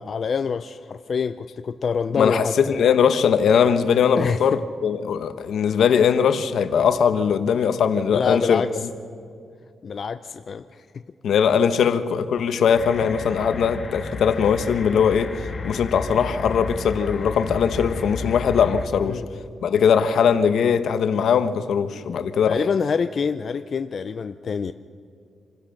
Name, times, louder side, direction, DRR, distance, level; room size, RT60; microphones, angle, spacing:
voice 1, 0.0-2.8 4.2-4.6 8.1-8.7 9.8-10.8 19.0-19.3 22.5-24.7, left 6 dB, 50° left, 0.5 m, -26 dB
voice 2, 2.2-8.6 11.2-15.3 15.6-19.2 19.6-22.6, left 7 dB, 75° left, 1.1 m, -20 dB
sound 1, 12.7-18.9, left 3 dB, 35° left, 1.4 m, -33 dB
26.5 x 16.0 x 6.5 m
cardioid pair, 125°, 0 cm